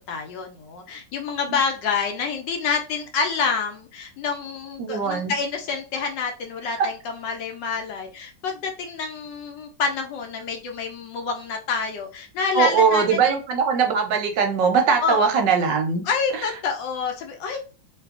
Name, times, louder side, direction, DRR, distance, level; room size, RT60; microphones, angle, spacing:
voice 1, 0.1-13.2 15.0-15.2 16.0-17.6, left 5 dB, 75° left, 4 dB, 1.2 m, -27 dB
voice 2, 4.8-5.3 6.8-6.9 12.5-16.0 16.3-16.5, right 6 dB, 70° right, 3 dB, 1.2 m, -21 dB
3.2 x 2.3 x 3.5 m, 0.33 s
omnidirectional pair, 2.2 m